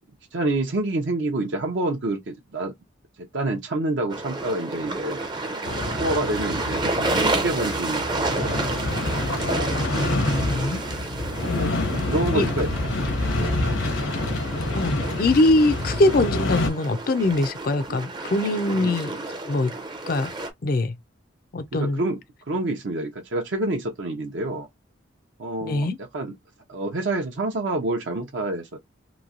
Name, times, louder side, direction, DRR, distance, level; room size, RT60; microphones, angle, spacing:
voice 1, 0.3-2.7 3.3-5.2 6.0-8.6 11.4-12.7 13.3-13.9 18.7-19.0 21.7-22.2 22.5-24.7 25.4-26.3 26.7-28.8, right 2 dB, 65° right, 0.6 m, -28 dB
sound 1, 4.1-20.5, right 2 dB, 25° right, 0.5 m, -30 dB
sound 2, 5.6-16.7, left 2 dB, 75° left, 0.9 m, -27 dB
voice 2, 9.6-10.8 11.4-11.9 12.3-12.5 14.7-19.1 19.4-19.7 20.0-20.3 20.6-21.0 21.5-22.0 25.6-26.0, left 2 dB, 45° left, 0.4 m, -23 dB
3.0 x 2.6 x 2.5 m
head